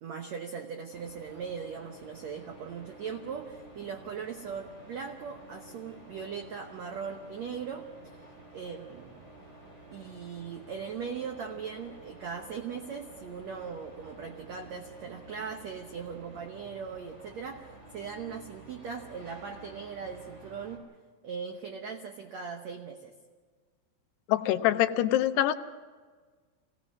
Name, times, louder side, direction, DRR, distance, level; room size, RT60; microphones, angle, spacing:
voice 1, 0.0-7.9 8.5-9.2 9.9-20.8 21.2-23.1, right 6 dB, 85° right, 4 dB, 1.5 m, -39 dB
sound 1, 0.9-20.8, right 2 dB, 15° right, 4.0 m, -51 dB
voice 2, 24.3-25.6, left 13 dB, 90° left, 9 dB, 2.8 m, -24 dB
25.0 x 17.5 x 6.0 m, 1.5 s
omnidirectional pair, 4.6 m